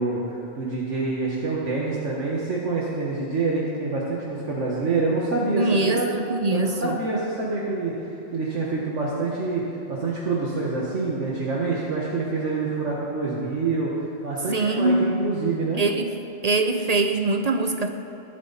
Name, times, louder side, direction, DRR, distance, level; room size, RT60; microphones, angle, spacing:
voice 1, 0.0-6.1 6.5-15.8, right 3 dB, 65° right, -4 dB, 1.8 m, -26 dB
voice 2, 5.5-7.0 14.5-15.2 15.8-16.2 16.4-17.9, right 2 dB, 40° right, 6 dB, 0.6 m, -23 dB
22.0 x 7.8 x 4.1 m, 2.9 s
omnidirectional pair, 1.3 m